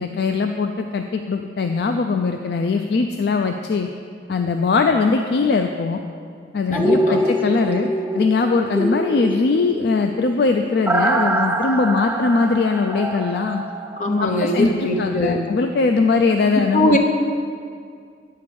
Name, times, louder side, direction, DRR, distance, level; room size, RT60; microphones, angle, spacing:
voice 1, 0.0-3.9 4.3-6.0 6.5-13.6 14.2-17.0, left 4 dB, 60° left, 5 dB, 0.4 m, -20 dB
voice 2, 6.7-7.2 14.0-15.4 16.7-17.0, left 1 dB, 45° left, 3 dB, 0.9 m, -21 dB
sound 1, 6.7-14.6 15.0-15.1, right 1 dB, 10° right, 0.3 m, -24 dB
9.6 x 4.7 x 6.9 m, 2.2 s
head